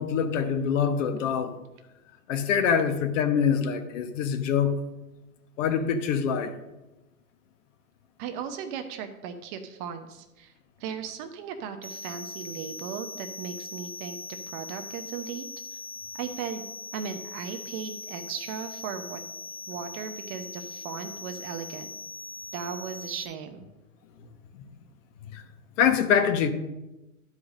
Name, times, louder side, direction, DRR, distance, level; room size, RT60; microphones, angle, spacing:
voice 1, 0.0-1.5 2.3-4.8 5.6-6.5 25.3-25.4 25.8-26.5, left 7 dB, 55° left, 9 dB, 1.1 m, -24 dB
voice 2, 8.2-10.5 10.8-14.2 14.5-15.5 16.2-16.7 16.9-19.2 19.7-21.9 22.5-23.7, right 7 dB, 30° right, 7 dB, 0.7 m, -37 dB
sound 1, 11.8-23.2, left 3 dB, 90° left, 2.9 m, -41 dB
11.5 x 4.9 x 6.3 m, 1.0 s
hypercardioid pair, 135°, 46 cm